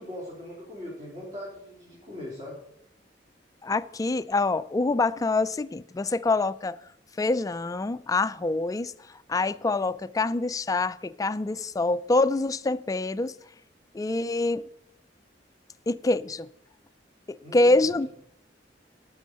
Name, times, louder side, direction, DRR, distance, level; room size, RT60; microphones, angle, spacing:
voice 1, 0.0-2.6 17.4-17.9, left 1 dB, 35° right, 3.5 m, -40 dB
voice 2, 3.6-6.8 7.2-8.9 9.3-13.3 13.9-14.6 15.9-16.5 17.3-18.1, left 2 dB, 20° left, 0.3 m, -25 dB
12.5 x 6.3 x 6.7 m
head